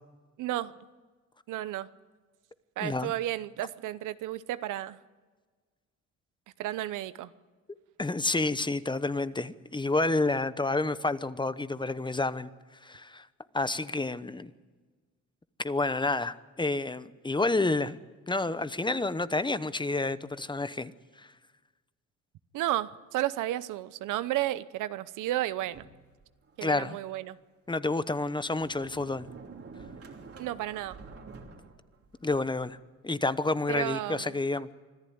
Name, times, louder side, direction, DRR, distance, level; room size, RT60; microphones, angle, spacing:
voice 1, 0.4-0.8 1.5-1.9 2.8-5.0 6.6-7.3 22.5-25.9 26.6-27.4 30.4-31.0 33.7-34.4, right 14 dB, 90° right, 15 dB, 0.8 m, -32 dB
voice 2, 2.8-3.1 8.0-12.5 12.8-13.3 13.5-14.5 15.6-18.0 18.3-21.3 26.6-27.0 27.7-29.3 32.2-32.8 33.0-34.7, left 2 dB, 15° left, 14 dB, 0.9 m, -29 dB
Sliding door, 25.7-26.6 27.2-27.3 27.9-32.7, right 4 dB, 50° right, 3.0 m, -49 dB
25.5 x 14.0 x 9.5 m, 1.4 s
cardioid pair, 90°, 30 cm